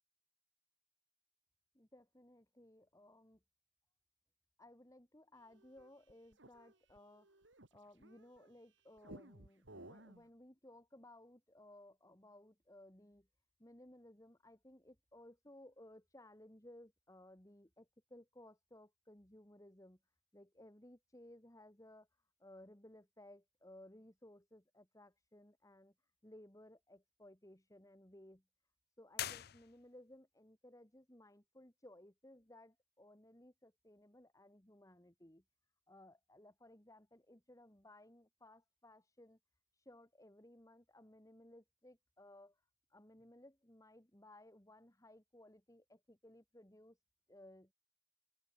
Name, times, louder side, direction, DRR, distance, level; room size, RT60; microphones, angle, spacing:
voice 1, 1.7-3.4 4.6-7.4 7.7-13.3 13.6-20.0 20.3-22.1 22.4-25.9 26.2-28.4 29.0-35.4 35.9-39.4 39.7-42.6 42.9-47.0 47.3-47.7, left 1 dB, 15° left, 2.1 m, -60 dB
sound 1, 5.5-8.5 9.0-10.3, right 1 dB, 70° right, 3.7 m, -57 dB
sound 2, 29.1-30.2, left 12 dB, 55° left, 0.6 m, -44 dB
open air
head